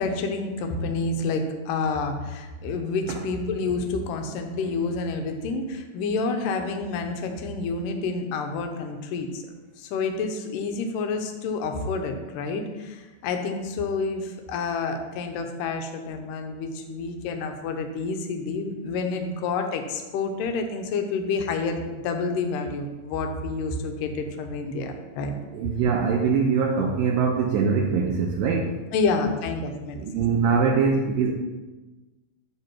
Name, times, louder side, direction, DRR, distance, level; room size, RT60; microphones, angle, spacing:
voice 1, 0.0-9.4 9.8-25.3 28.9-30.2, left 4 dB, 75° left, 5 dB, 2.1 m, -29 dB
voice 2, 25.5-28.7 30.0-31.3, right 5 dB, 80° right, 1 dB, 2.1 m, -23 dB
9.7 x 3.8 x 5.9 m, 1.2 s
omnidirectional pair, 4.5 m